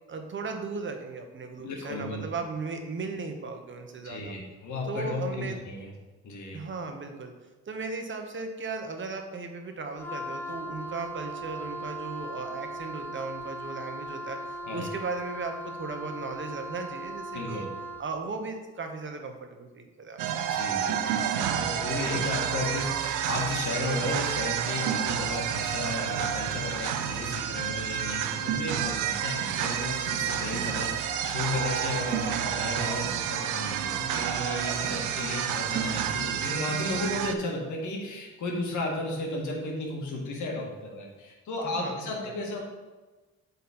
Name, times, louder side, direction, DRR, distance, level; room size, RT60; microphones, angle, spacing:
voice 1, 0.1-4.3 4.9-5.6 6.5-7.3 7.7-14.4 14.7-17.7 18.0-20.5 28.5-28.8 41.6-42.4, right 4 dB, 40° right, 5 dB, 1.1 m, -36 dB
voice 2, 1.6-2.2 4.0-5.9 6.2-6.6 14.7-14.9 17.3-17.7 20.5-42.6, left 2 dB, 75° left, 0 dB, 1.8 m, -34 dB
Wind instrument woodwind instrument, 10.0-18.1, right 1 dB, 5° left, 0.4 m, -38 dB
sound 1, 20.2-37.3, right 9 dB, 85° right, 0.6 m, -30 dB
sound 2, 29.9-30.0 30.3-38.1 38.4-39.5, left 1 dB, 30° left, 1.8 m, -52 dB
7.8 x 4.1 x 4.4 m, 1.2 s
cardioid pair, 90°, 30 cm